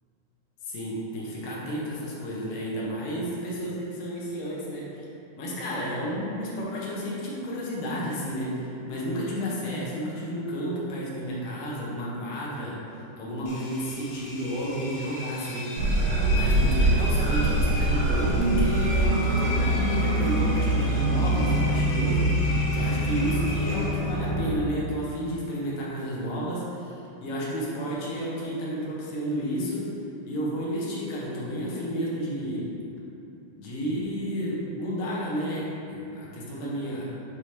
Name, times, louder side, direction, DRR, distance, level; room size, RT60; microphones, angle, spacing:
voice 1, 0.6-5.0 5.4-12.8 13.2-16.0 16.3-29.9 30.3-32.7 33.6-37.0, equal, 70° left, -6 dB, 2.5 m, -31 dB
Engine, 13.5-24.3, left 2 dB, 85° left, 2.8 m, -38 dB
sound 1, 15.8-24.6, right 1 dB, 80° right, 2.1 m, -24 dB
6.9 x 3.3 x 4.4 m, 2.8 s
omnidirectional pair, 4.3 m